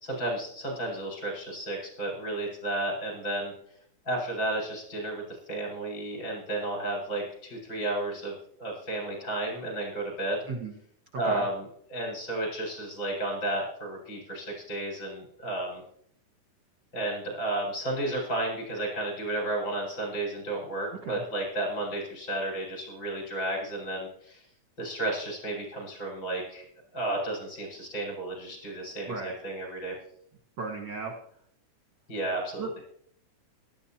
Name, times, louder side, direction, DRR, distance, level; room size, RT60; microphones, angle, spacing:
voice 1, 0.0-3.5 4.1-8.3 8.6-10.4 11.1-15.8 16.9-24.4 24.8-26.6 26.9-30.0 32.1-32.7, right 1 dB, 35° left, -2 dB, 5.7 m, -32 dB
voice 2, 30.6-31.1 32.6-32.8, right 4 dB, 50° right, 1 dB, 1.5 m, -35 dB
18.0 x 13.0 x 2.9 m, 0.66 s
omnidirectional pair, 3.8 m